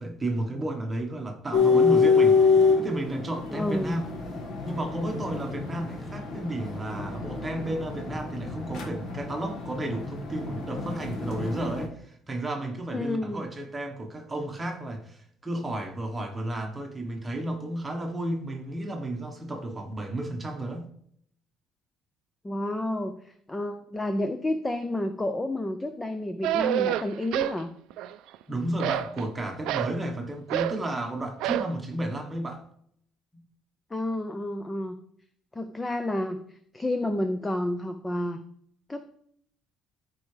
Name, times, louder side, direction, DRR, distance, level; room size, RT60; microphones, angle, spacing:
voice 1, 0.0-2.4 2.8-4.1 4.6-20.9 28.5-32.6, right 1 dB, 15° right, 1.2 m, -32 dB
sound 1, 1.5-11.9, left 5 dB, 50° left, 1.6 m, -26 dB
voice 2, 3.5-4.0 12.9-13.4 22.4-27.7 33.9-35.0 35.5-36.4 36.7-38.4 38.9-39.2, left 1 dB, 10° left, 0.4 m, -30 dB
sound 2, 26.4-27.6 27.9-28.4 28.8-30.0 30.5-30.8 31.4-31.7, right 12 dB, 80° right, 0.4 m, -28 dB
13.5 x 4.8 x 3.3 m
cardioid pair, 165°, 0 cm